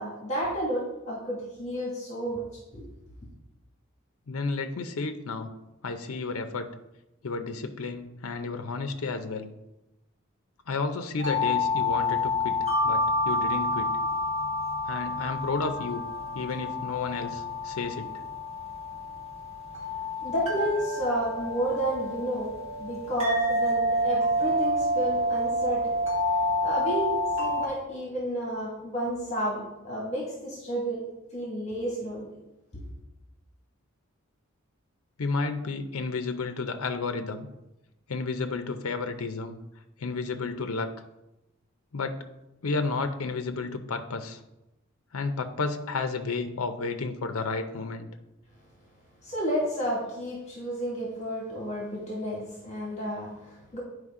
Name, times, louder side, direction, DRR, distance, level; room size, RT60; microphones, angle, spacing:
voice 1, 0.0-2.4 2.7-2.8 20.2-22.5 22.8-26.0 26.6-31.0 31.3-32.3 49.2-53.8, equal, 30° left, -4 dB, 1.8 m, -31 dB
voice 2, 4.3-5.5 5.8-6.7 7.2-9.5 10.7-12.6 12.8-13.9 14.9-16.0 16.3-18.1 35.2-37.5 38.1-39.6 40.0-40.9 41.9-42.2 42.6-44.4 45.1-48.1, left 4 dB, 80° left, 8 dB, 0.6 m, -31 dB
sound 1, 11.2-27.7, left 1 dB, 30° right, 1.9 m, -28 dB
9.6 x 4.9 x 3.7 m, 0.94 s
head